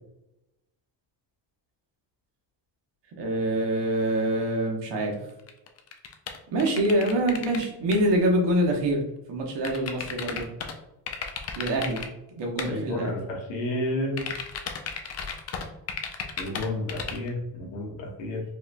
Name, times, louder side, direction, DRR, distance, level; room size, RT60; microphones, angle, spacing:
voice 1, 3.2-5.2 6.5-9.0 9.3-10.5 11.5-12.0 12.4-13.2, right 1 dB, 65° right, 0 dB, 1.1 m, -25 dB
sound 1, 5.4-7.6 7.9-8.0 9.6-10.7 11.1-12.1 12.6-12.7 14.2-17.3, left 6 dB, 35° left, 0.5 m, -34 dB
voice 2, 12.7-14.2 16.4-18.4, left 1 dB, 75° left, -1 dB, 1.3 m, -31 dB
4.8 x 2.5 x 2.2 m, 0.89 s
cardioid pair, 105°, 46 cm